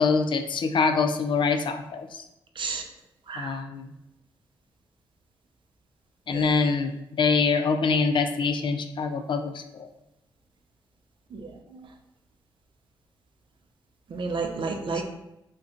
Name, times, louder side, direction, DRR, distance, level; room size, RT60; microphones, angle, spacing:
voice 1, 0.0-2.2 3.4-3.9 6.3-6.9 7.2-9.9, left 4 dB, 60° left, 7 dB, 0.4 m, -24 dB
voice 2, 3.3-3.6 6.3-6.6 11.3-11.9 14.1-15.1, right 4 dB, 65° right, 4 dB, 0.4 m, -32 dB
2.4 x 2.2 x 3.8 m, 0.85 s
supercardioid pair, 45°, 9 cm